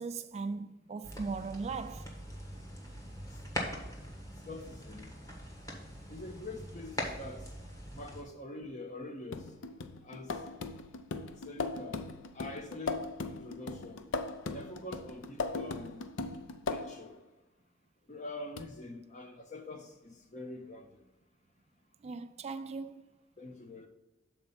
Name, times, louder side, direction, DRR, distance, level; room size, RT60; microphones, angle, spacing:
voice 1, 0.0-2.2 22.0-23.0, right 4 dB, 35° right, 0.3 m, -38 dB
sound 1, 1.0-8.2, equal, 20° left, 1.4 m, -42 dB
voice 2, 4.4-5.1 6.1-7.5 7.9-9.5 10.0-10.3 11.4-12.0 12.3-14.0 14.5-16.1 16.7-17.2 18.1-20.9 23.4-23.9, left 2 dB, 40° left, 0.9 m, -45 dB
sound 2, 9.3-17.1 18.6-18.7, left 3 dB, 90° left, 0.5 m, -39 dB
6.9 x 4.3 x 5.6 m
head